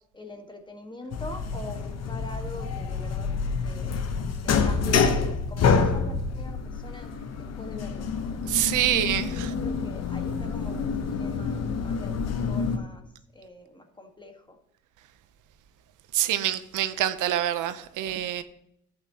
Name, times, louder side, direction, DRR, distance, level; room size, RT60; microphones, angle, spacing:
voice 1, 0.1-3.3 3.6-3.9 4.4-8.1 8.8-12.2 12.5-13.0 13.3-14.6, left 1 dB, 15° left, 1.5 m, -43 dB
sound 1, 1.1-12.8, left 5 dB, 55° left, 1.0 m, -27 dB
voice 2, 8.5-9.5 16.1-18.4, right 12 dB, 85° right, 0.7 m, -26 dB
11.5 x 8.1 x 2.9 m
cardioid pair, 90°, 30 cm